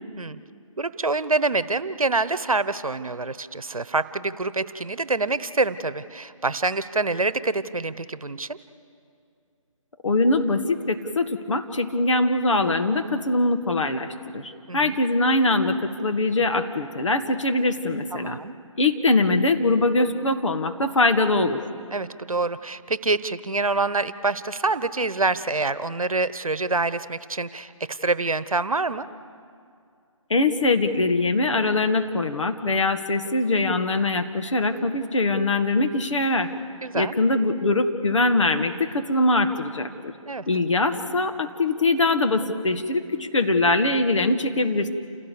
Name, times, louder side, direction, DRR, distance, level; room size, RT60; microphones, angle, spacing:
voice 1, 0.8-8.6 14.7-15.0 18.1-18.5 21.9-29.1 36.8-37.1 40.3-40.4, right 3 dB, 80° right, 15 dB, 1.0 m, -26 dB
voice 2, 10.0-18.4 18.8-21.6 30.3-36.5 36.9-40.1 40.5-44.9, left 2 dB, 60° left, 6 dB, 1.7 m, -22 dB
29.0 x 16.5 x 6.9 m, 2.4 s
figure-of-eight pair, 155°, 18 cm